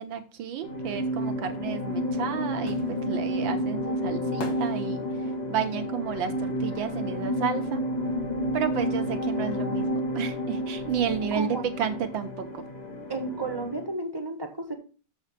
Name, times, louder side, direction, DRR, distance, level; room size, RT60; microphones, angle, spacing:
voice 1, 0.0-5.0 5.5-7.8 8.5-12.6, right 8 dB, 70° right, 1.7 m, -31 dB
sound 1, 0.6-14.0, equal, 25° left, 1.0 m, -30 dB
sound 2, 1.8-7.6 7.9-9.5 9.8-9.9, left 2 dB, 60° left, 2.0 m, -44 dB
voice 2, 11.3-11.6 13.1-14.7, right 3 dB, 15° right, 1.1 m, -32 dB
7.0 x 5.3 x 6.6 m
omnidirectional pair, 2.3 m